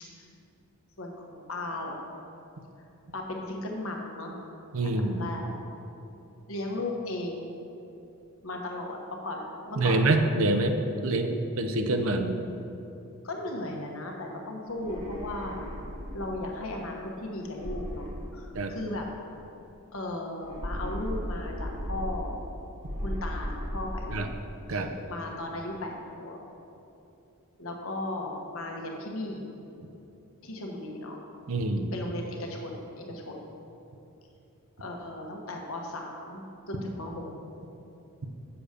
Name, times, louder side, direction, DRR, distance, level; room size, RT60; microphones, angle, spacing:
voice 1, 1.0-2.1 3.1-4.4 4.8-5.5 6.5-7.5 8.4-9.0 9.2-10.0 13.2-15.7 16.1-19.1 19.9-22.4 23.0-24.2 24.7-24.8 25.1-26.4 27.6-29.5 30.4-31.2 31.9-33.4 34.8-37.2, left 1 dB, 65° left, 1 dB, 1.1 m, -36 dB
voice 2, 4.7-5.3 9.8-12.4 18.5-18.8 24.1-24.3 24.7-24.9 31.5-31.9, right 2 dB, 65° right, 6 dB, 0.6 m, -26 dB
sound 1, 14.7-16.6 17.5-19.0 20.4-22.5 22.8-24.5, equal, 25° right, 1.3 m, -36 dB
7.0 x 6.8 x 5.0 m, 2.8 s
head